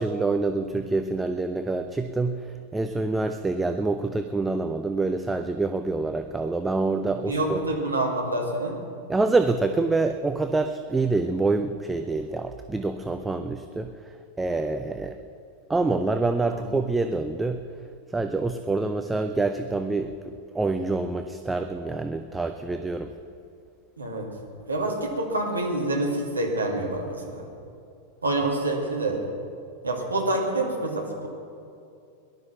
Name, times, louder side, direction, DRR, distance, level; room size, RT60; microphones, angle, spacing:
voice 1, 0.0-7.6 9.1-15.2 15.7-17.6 18.1-23.1, right 3 dB, 10° right, 7 dB, 0.6 m, -26 dB
voice 2, 7.3-8.8 16.5-16.6 24.0-24.3 24.7-27.5 28.2-29.2 29.8-31.3, right 2 dB, 75° right, 1 dB, 2.3 m, -27 dB
18.5 x 11.5 x 5.9 m, 2.5 s
figure-of-eight pair, 90°, 0 cm